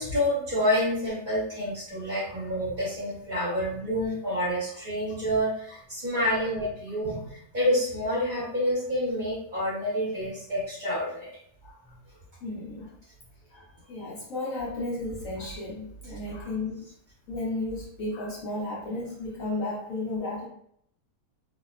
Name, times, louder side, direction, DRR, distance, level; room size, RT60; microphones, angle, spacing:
voice 1, 0.0-11.3, equal, 35° right, -9 dB, 1.2 m, -28 dB
voice 2, 12.4-13.0 13.5-16.9 17.3-20.5, left 2 dB, 65° left, -5 dB, 1.0 m, -34 dB
2.7 x 2.1 x 2.3 m, 0.68 s
omnidirectional pair, 1.6 m